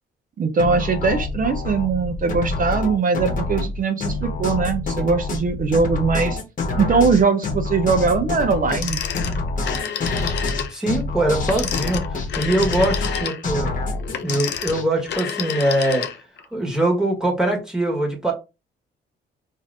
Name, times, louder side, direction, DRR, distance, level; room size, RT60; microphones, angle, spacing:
voice 1, 0.4-6.4 6.8-9.0, right 4 dB, 45° right, 0.6 m, -21 dB
sound 1, 0.6-14.9, left 3 dB, 40° left, 1.1 m, -27 dB
Telephone, 8.7-10.8 11.4-16.4, left 8 dB, 60° left, 0.6 m, -29 dB
voice 2, 10.7-13.7 14.2-16.0 16.5-18.3, right 1 dB, 5° right, 1.4 m, -22 dB
2.6 x 2.5 x 3.4 m
cardioid pair, 90°, 20 cm